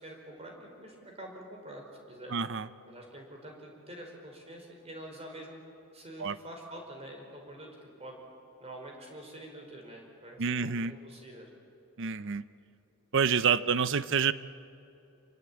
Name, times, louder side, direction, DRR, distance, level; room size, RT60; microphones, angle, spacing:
voice 1, 0.0-2.3 2.9-5.6 5.9-7.7 8.0-8.2 8.6-11.5, right 1 dB, 30° right, 1 dB, 5.1 m, -46 dB
voice 2, 2.3-2.7 6.2-6.4 10.4-10.9 12.0-12.4 13.1-14.3, right 6 dB, 60° right, 15 dB, 0.7 m, -27 dB
26.5 x 23.0 x 8.8 m, 2.7 s
head